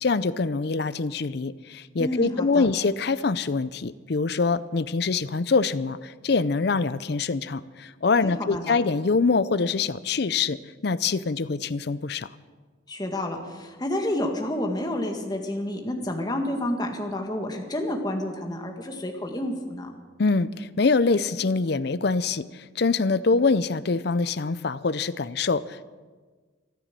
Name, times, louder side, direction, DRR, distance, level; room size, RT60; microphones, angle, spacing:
voice 1, 0.0-10.6 10.8-12.3 20.2-22.5 22.8-25.8, left 4 dB, 55° left, 16 dB, 0.5 m, -24 dB
voice 2, 2.0-2.7 8.2-8.7 12.9-19.9, left 1 dB, 20° left, 2 dB, 1.8 m, -29 dB
14.0 x 13.0 x 7.6 m, 1.4 s
head